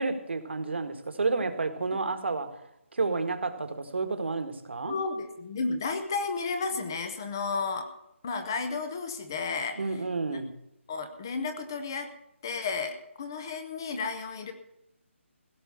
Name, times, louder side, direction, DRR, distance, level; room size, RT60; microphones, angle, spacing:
voice 1, 0.0-2.5 2.9-5.0 9.8-10.5, right 3 dB, 55° right, 8 dB, 1.7 m, -30 dB
voice 2, 4.8-7.9 8.2-10.0 10.9-12.1 12.4-14.5, left 4 dB, 15° left, 8 dB, 0.7 m, -32 dB
16.5 x 5.5 x 9.9 m, 0.81 s
hypercardioid pair, 180°, 7 cm